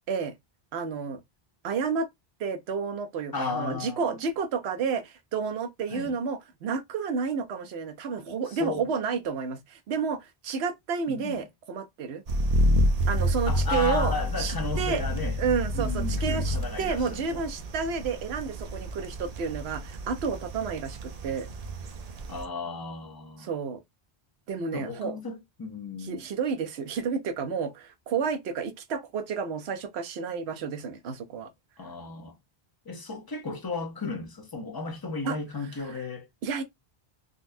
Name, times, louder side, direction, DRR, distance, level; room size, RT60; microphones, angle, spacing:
voice 1, 0.7-1.2 1.6-2.1 2.4-12.2 13.1-15.0 15.4-21.5 23.4-23.8 24.5-25.2 26.0-31.5 35.2-35.4 35.9-36.0 36.4-36.6, right 5 dB, 85° right, 0.9 m, -31 dB
voice 2, 3.3-4.2 5.9-6.2 8.5-8.9 11.1-11.4 13.5-15.4 15.7-17.4 22.3-23.5 24.7-26.3 31.8-32.3 32.9-36.3, left 4 dB, 25° left, 0.6 m, -34 dB
sound 1, 12.3-22.4, equal, 50° right, 0.5 m, -29 dB
3.8 x 2.3 x 2.6 m
omnidirectional pair, 1.0 m